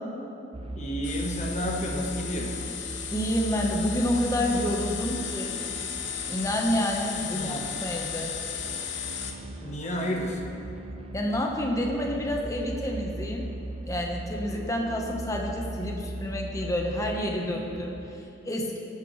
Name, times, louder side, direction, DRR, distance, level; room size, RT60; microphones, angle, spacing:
sound 1, 0.5-18.2, right 2 dB, 30° right, 0.5 m, -39 dB
voice 1, 0.7-2.5 7.3-7.6 9.6-10.4, equal, 35° left, 0 dB, 1.2 m, -31 dB
sound 2, 1.0-9.4, left 8 dB, 70° left, 0.9 m, -35 dB
voice 2, 3.1-5.6 6.3-8.3 11.1-13.5 13.9-18.8, equal, 15° left, 0 dB, 1.1 m, -29 dB
17.5 x 8.5 x 3.2 m, 2.9 s
head